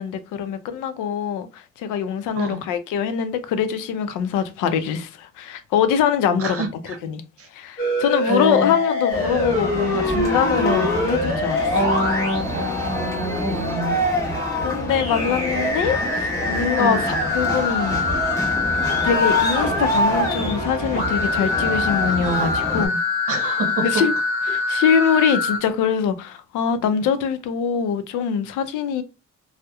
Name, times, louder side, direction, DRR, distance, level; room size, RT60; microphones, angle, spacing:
voice 1, 0.0-6.6 7.0-7.2 7.5-11.7 14.6-18.0 19.0-23.0 23.8-24.1 24.5-29.0, left 7 dB, 90° left, 0.5 m, -23 dB
voice 2, 2.4-2.7 6.4-7.0 7.4-7.5 8.3-8.7 11.7-14.0 16.8-17.1 23.3-24.1, right 1 dB, 50° right, 0.7 m, -26 dB
sound 1, 7.8-13.7 14.9-25.6, left 2 dB, 45° left, 1.0 m, -25 dB
sound 2, 9.1-22.9, left 1 dB, 10° left, 1.0 m, -25 dB
2.7 x 2.0 x 2.2 m
cardioid pair, 90°, 30 cm